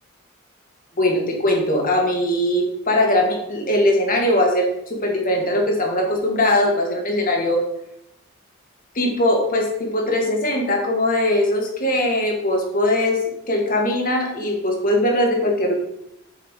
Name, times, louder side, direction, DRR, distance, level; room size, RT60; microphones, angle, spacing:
voice 1, 1.0-7.6 9.0-15.7, left 1 dB, 45° left, 1 dB, 1.8 m, -20 dB
7.8 x 5.8 x 5.0 m, 0.82 s
head